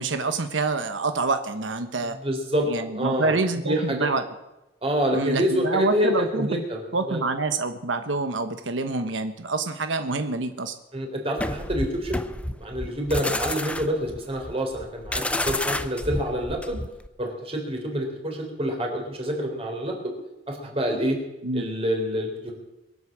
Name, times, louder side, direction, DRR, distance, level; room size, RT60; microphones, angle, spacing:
voice 1, 0.0-2.2 2.7-4.2 5.1-6.6 6.9-10.7 21.4-21.7, right 3 dB, 85° right, 8 dB, 1.1 m, -27 dB
voice 2, 2.2-4.1 4.8-7.2 10.9-12.2 12.6-16.8 17.2-20.1 20.5-21.2 21.5-22.5, equal, 30° right, 2 dB, 3.9 m, -27 dB
sound 1, 11.4-17.1, left 1 dB, 5° left, 0.6 m, -30 dB
22.5 x 8.2 x 7.4 m, 0.98 s
head